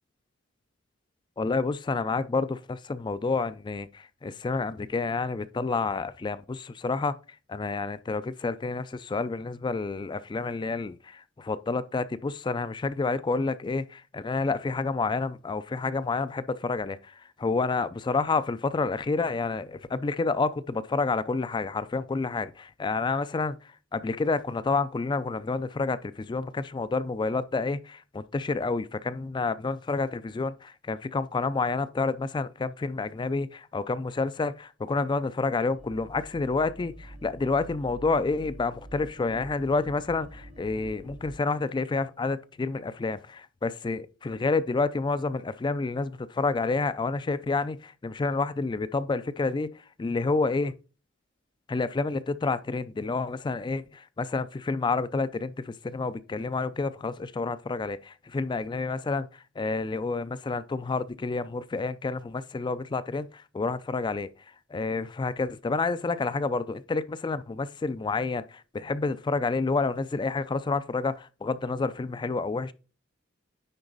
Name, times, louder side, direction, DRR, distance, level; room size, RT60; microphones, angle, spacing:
voice 1, 1.4-7.2 7.5-50.7 51.7-64.3 64.7-72.7, left 3 dB, 20° left, 0.3 m, -29 dB
sound 1, 35.7-41.4, right 1 dB, 85° right, 3.7 m, -46 dB
9.8 x 3.9 x 3.9 m
head